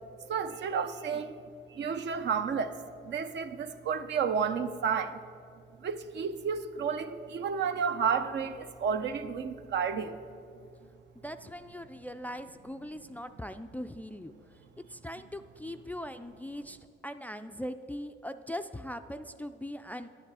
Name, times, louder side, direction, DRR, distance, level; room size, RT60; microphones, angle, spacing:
voice 1, 0.3-1.3 1.7-5.2 5.8-10.2, right 6 dB, 60° right, 9 dB, 0.6 m, -31 dB
voice 2, 11.2-14.3 14.9-16.8 17.0-20.1, equal, 10° left, 9 dB, 0.3 m, -40 dB
10.5 x 8.9 x 4.7 m, 2.4 s
cardioid pair, 90°, 20 cm